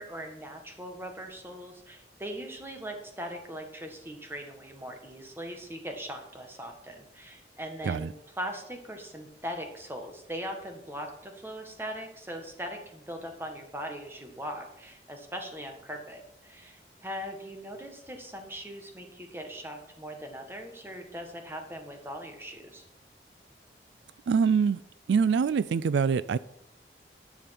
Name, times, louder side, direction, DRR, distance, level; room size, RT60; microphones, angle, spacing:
voice 1, 0.0-22.9, equal, 15° right, 1.5 m, -40 dB
voice 2, 24.3-24.8 25.1-26.4, right 6 dB, 80° right, 0.3 m, -24 dB
11.0 x 7.0 x 5.9 m
head